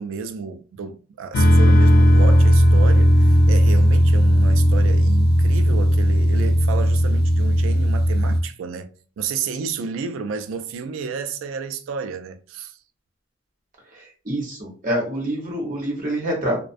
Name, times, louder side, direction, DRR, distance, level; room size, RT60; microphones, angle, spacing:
voice 1, 0.0-12.8, right 5 dB, 80° right, 0.3 m, -31 dB
sound 1, 1.3-8.4, equal, 55° left, 0.3 m, -16 dB
voice 2, 13.9-16.6, right 1 dB, 45° right, 0.9 m, -26 dB
2.4 x 2.1 x 2.5 m
head